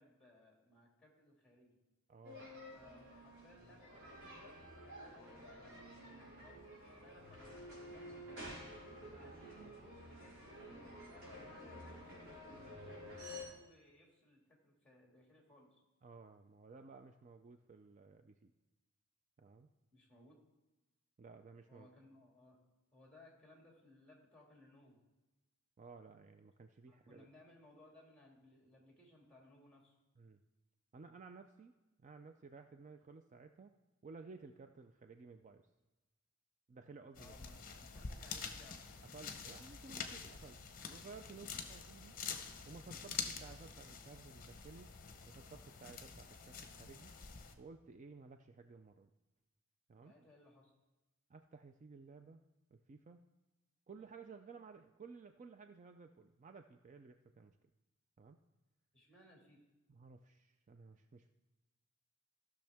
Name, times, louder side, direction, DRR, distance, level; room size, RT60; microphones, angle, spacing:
voice 1, 0.0-1.8 2.7-8.5 9.0-15.8 19.9-20.4 21.7-22.6 22.9-25.0 26.9-29.9 37.2-38.8 41.4-41.6 50.0-50.7 58.9-59.6, left 1 dB, 5° left, -1 dB, 2.1 m, -63 dB
voice 2, 2.1-2.4 16.0-18.5 19.4-19.7 21.2-21.9 25.8-27.3 30.2-30.4 30.9-33.7 34.0-35.7 36.7-37.3 39.1-40.6 40.9-42.2 42.7-45.0 45.3-47.1 47.6-49.1 49.9-50.1 51.3-52.4 52.7-53.2 53.9-57.6 58.2-58.4 59.9-61.3, right 4 dB, 35° right, 7 dB, 0.4 m, -56 dB
sound 1, 2.2-13.4, equal, 70° right, 3.7 m, -51 dB
sound 2, 37.1-47.5, left 6 dB, 40° left, 0.8 m, -47 dB
15.0 x 6.3 x 3.5 m, 1.1 s
head